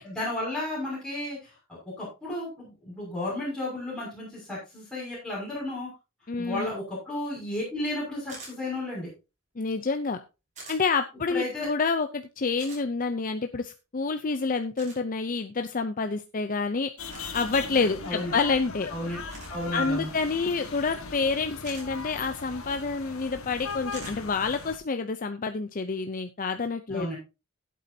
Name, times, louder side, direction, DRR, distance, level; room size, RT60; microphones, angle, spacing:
voice 1, 0.0-1.5 1.9-5.9 6.4-9.1 11.3-11.7 18.0-18.3 18.9-19.2 19.5-20.1 26.9-27.2, left 1 dB, 5° left, -7 dB, 6.2 m, -33 dB
voice 2, 6.3-6.7 9.6-10.2 10.7-16.9 17.3-18.9 19.7-27.1, left 4 dB, 40° left, 8 dB, 0.6 m, -28 dB
sound 1, 8.3-8.6 10.6-10.8 12.6-12.8 14.8-15.0 17.1-17.3 19.3-19.6 21.6-21.9 23.9-24.2, right 2 dB, 35° right, 5.7 m, -43 dB
sound 2, 17.0-24.8, left 4 dB, 85° left, 1.6 m, -38 dB
15.5 x 8.4 x 2.8 m, 0.28 s
head